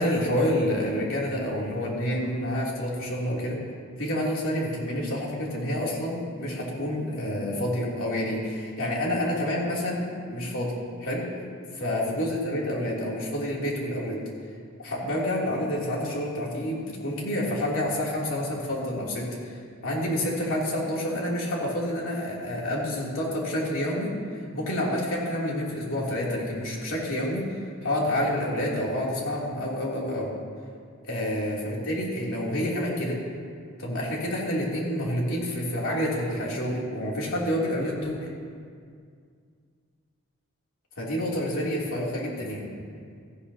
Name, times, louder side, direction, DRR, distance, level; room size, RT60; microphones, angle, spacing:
voice 1, 0.0-3.6 4.0-10.7 11.0-11.3 11.7-14.2 14.8-24.1 24.5-30.3 31.0-33.2 33.8-38.3 41.0-42.6, left 1 dB, 75° left, -4 dB, 3.0 m, -28 dB
17.5 x 14.5 x 2.8 m, 2.2 s
head